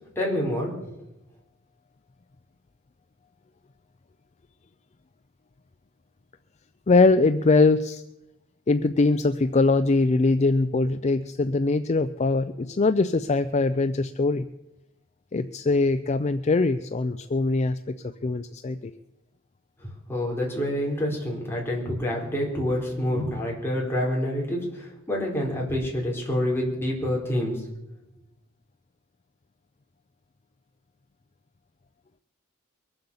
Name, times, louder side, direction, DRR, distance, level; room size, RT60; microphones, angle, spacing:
voice 1, 0.2-1.0 19.8-27.6, left 1 dB, 10° left, -2 dB, 4.1 m, -27 dB
voice 2, 6.9-8.0 8.7-14.5 15.3-17.8 18.0-18.9, left 3 dB, 30° left, 11 dB, 0.4 m, -22 dB
22.5 x 7.8 x 7.1 m, 0.91 s
head